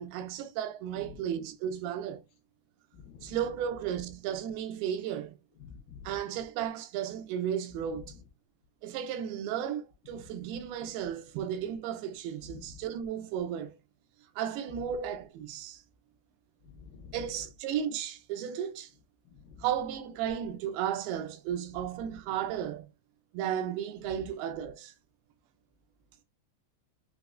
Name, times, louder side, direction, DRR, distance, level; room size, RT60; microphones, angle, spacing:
voice 1, 0.0-2.2 3.2-5.4 6.0-8.2 8.8-13.8 14.4-15.8 17.1-18.9 19.6-22.9 23.3-24.9, right 9 dB, 85° right, 2.5 m, -34 dB
voice 2, 2.9-3.4 5.6-6.1 12.4-12.6 16.7-17.2 19.3-19.6, left 6 dB, 80° left, 2.3 m, -49 dB
6.0 x 2.0 x 2.4 m
omnidirectional pair, 4.4 m